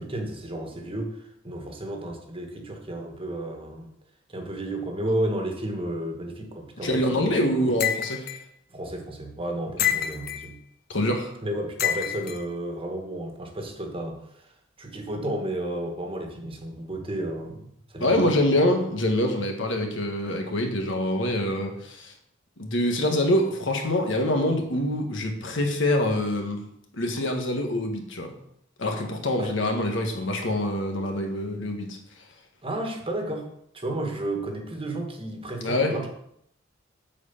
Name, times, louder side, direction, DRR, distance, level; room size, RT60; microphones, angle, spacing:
voice 1, 0.0-3.9 4.3-7.8 8.7-10.6 11.4-14.5 14.8-18.4 29.4-29.5 32.6-36.1, right 1 dB, 30° right, 3 dB, 1.5 m, -32 dB
voice 2, 6.8-8.3 10.9-11.3 18.0-22.1 22.6-26.6 26.9-28.3 28.8-32.0 35.6-35.9, left 1 dB, 65° left, 3 dB, 1.5 m, -25 dB
sound 1, 7.8-8.4 9.8-10.5 11.8-12.4, left 10 dB, 50° left, 0.7 m, -27 dB
8.2 x 4.6 x 7.0 m, 0.73 s
head